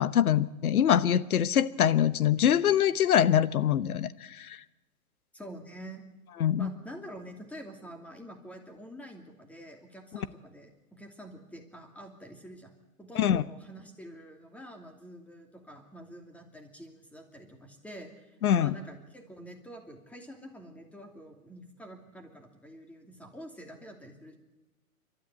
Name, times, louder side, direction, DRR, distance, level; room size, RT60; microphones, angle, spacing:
voice 1, 0.0-4.6 6.4-6.7 13.1-13.4 18.4-18.7, left 9 dB, 70° left, 16 dB, 1.1 m, -24 dB
voice 2, 5.3-6.0 6.6-24.4, equal, 5° left, 4 dB, 2.6 m, -47 dB
29.5 x 13.0 x 8.2 m, 1.1 s
hypercardioid pair, 130°, 45 cm